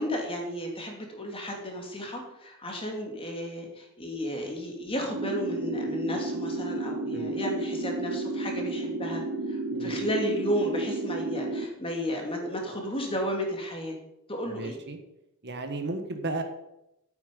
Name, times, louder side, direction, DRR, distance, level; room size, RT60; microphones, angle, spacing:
voice 1, 0.0-9.2 9.5-13.9 14.3-14.8, equal, 25° left, 1 dB, 2.5 m, -33 dB
sound 1, 5.1-11.7, right 2 dB, 85° right, 1.2 m, -32 dB
voice 2, 9.7-10.1 14.5-15.0 15.4-16.4, right 2 dB, 50° right, 6 dB, 1.5 m, -34 dB
11.5 x 8.6 x 5.4 m, 0.88 s
head